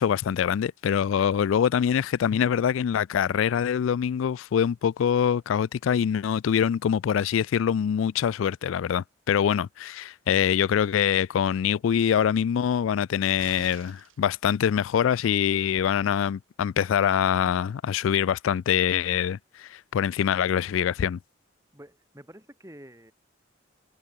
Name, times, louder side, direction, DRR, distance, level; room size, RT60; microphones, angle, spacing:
voice 1, 0.0-21.2, left 8 dB, 85° left, 0.3 m, -24 dB
sound 1, 13.4-14.2 15.8-15.9, right 6 dB, 90° right, 1.8 m, -47 dB
voice 2, 21.7-23.1, equal, 15° right, 5.6 m, -48 dB
head